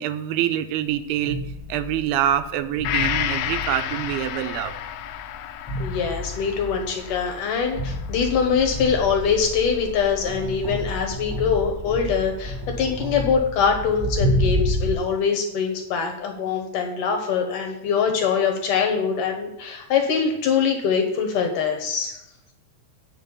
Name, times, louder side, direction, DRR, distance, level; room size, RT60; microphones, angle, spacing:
voice 1, 0.0-1.4 1.7-4.7, right 11 dB, 80° right, 11 dB, 2.5 m, -25 dB
sound 1, 0.9-15.0, left 1 dB, 5° left, 3.5 m, -30 dB
Gong, 2.8-10.5 10.9-11.0, left 12 dB, 85° left, 2.5 m, -32 dB
voice 2, 5.8-22.2, left 6 dB, 65° left, 3 dB, 2.4 m, -23 dB
9.5 x 5.3 x 7.1 m, 0.85 s
omnidirectional pair, 4.4 m